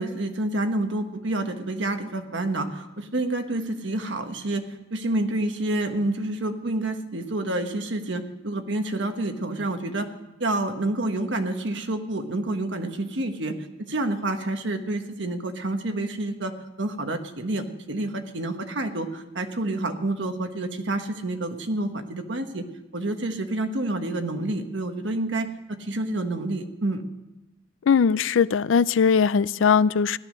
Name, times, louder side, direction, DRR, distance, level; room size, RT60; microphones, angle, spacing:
voice 1, 0.0-4.6 4.9-10.1 10.4-22.7 22.9-27.0, right 2 dB, 70° right, 6 dB, 1.3 m, -28 dB
voice 2, 27.9-30.2, left 6 dB, 85° left, 18 dB, 0.4 m, -20 dB
16.0 x 12.0 x 6.5 m, 0.97 s
head